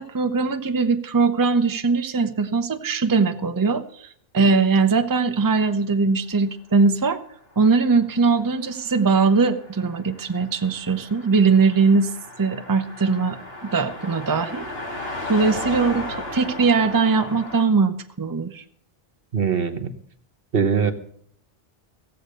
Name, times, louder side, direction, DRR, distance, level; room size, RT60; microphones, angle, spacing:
voice 1, 0.0-4.1 4.3-7.2 7.6-12.1 12.4-14.6 15.3-18.6, right 4 dB, 20° right, 8 dB, 0.7 m, -20 dB
Car passing by, 7.5-17.6, left 2 dB, 70° left, 2.9 m, -36 dB
voice 2, 19.3-19.9 20.5-20.9, right 6 dB, 65° right, 9 dB, 1.3 m, -21 dB
15.5 x 7.9 x 6.6 m, 0.64 s
omnidirectional pair, 1.0 m